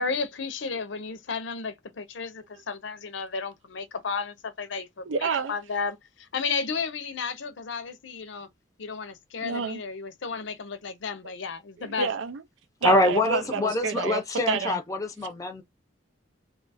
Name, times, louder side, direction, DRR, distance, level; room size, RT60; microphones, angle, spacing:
voice 1, 0.0-5.0 5.5-8.5 8.8-12.1, left 5 dB, 70° left, 0.6 m, -33 dB
voice 2, 5.1-5.6 9.4-9.8 11.8-12.4 12.8-14.8, right 5 dB, 80° right, 0.5 m, -29 dB
voice 3, 12.8-15.6, left 2 dB, 15° left, 0.6 m, -25 dB
2.9 x 2.4 x 4.0 m
head